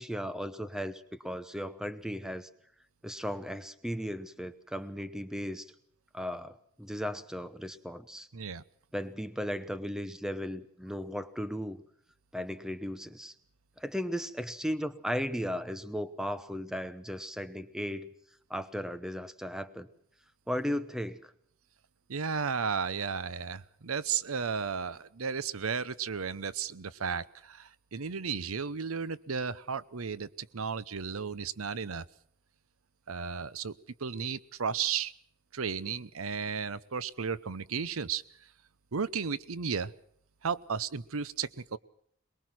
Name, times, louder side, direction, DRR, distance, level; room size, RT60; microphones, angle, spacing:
voice 1, 0.0-2.5 3.0-5.7 6.1-8.3 8.9-11.8 12.3-13.3 13.8-18.1 18.5-19.9 20.5-21.3, equal, 5° right, 12 dB, 0.9 m, -36 dB
voice 2, 8.3-8.6 22.1-32.1 33.1-33.7 34.0-35.1 35.5-38.2 38.9-39.9 40.4-41.8, right 6 dB, 85° right, 17 dB, 0.8 m, -34 dB
22.5 x 21.5 x 6.1 m, 0.66 s
head